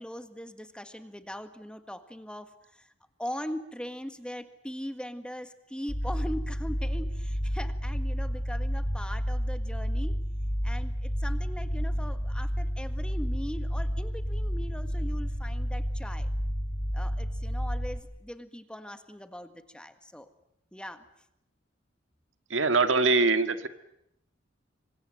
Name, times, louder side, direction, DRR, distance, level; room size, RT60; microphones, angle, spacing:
voice 1, 0.0-2.9 3.2-10.2 10.6-16.3 16.9-20.3 20.7-21.1, equal, 5° left, 9 dB, 1.7 m, -40 dB
sound 1, 5.9-18.0, equal, 40° left, 5.8 m, -30 dB
voice 2, 22.5-23.7, right 3 dB, 80° right, 9 dB, 1.9 m, -23 dB
27.5 x 25.5 x 7.8 m, 0.79 s
head